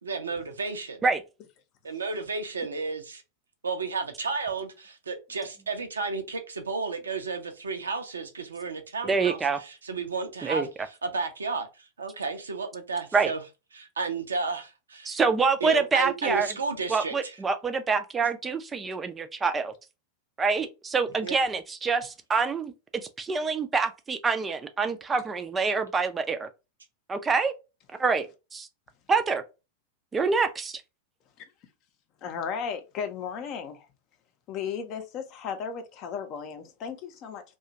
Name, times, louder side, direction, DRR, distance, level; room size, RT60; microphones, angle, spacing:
voice 1, 0.0-1.0 1.8-3.2 3.6-13.4 13.7-15.2 15.6-17.3 21.2-21.4, right 4 dB, 70° right, 0.6 m, -33 dB
voice 2, 9.0-9.6 10.4-10.7 13.1-13.3 15.0-16.5 16.9-19.7 20.4-22.7 23.2-26.5 27.1-27.5 28.0-28.3 28.5-28.7 29.1-29.4 30.1-30.8, right 4 dB, 15° right, 0.4 m, -26 dB
voice 3, 32.2-33.9 34.5-37.4, left 7 dB, 40° left, 0.6 m, -35 dB
2.8 x 2.3 x 2.6 m
figure-of-eight pair, 90°, 0 cm